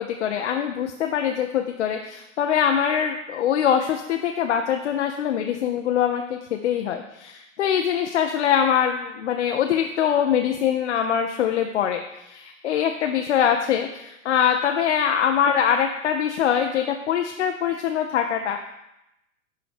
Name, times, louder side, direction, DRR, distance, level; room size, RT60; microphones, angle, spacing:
voice 1, 0.0-18.7, left 8 dB, 55° left, 4 dB, 0.6 m, -23 dB
11.0 x 3.9 x 3.4 m, 0.89 s
figure-of-eight pair, 100°, 41 cm